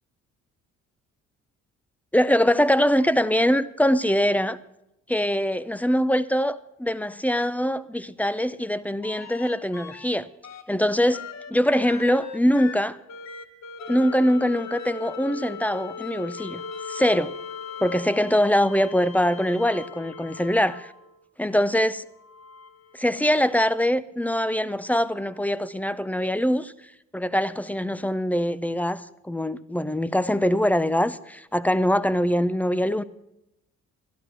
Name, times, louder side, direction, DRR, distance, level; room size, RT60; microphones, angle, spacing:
voice 1, 2.1-4.6 5.1-10.3 10.7-13.0 13.9-16.6 16.9-17.3 17.8-20.9 21.4-22.0 22.9-26.7 27.1-33.0, equal, 5° left, 0.5 m, -23 dB
sound 1, 9.0-10.1 10.4-21.2 22.1-23.6 25.3-25.4, left 5 dB, 60° left, 1.2 m, -39 dB
12.0 x 11.5 x 6.0 m
cardioid pair, 90°, 30 cm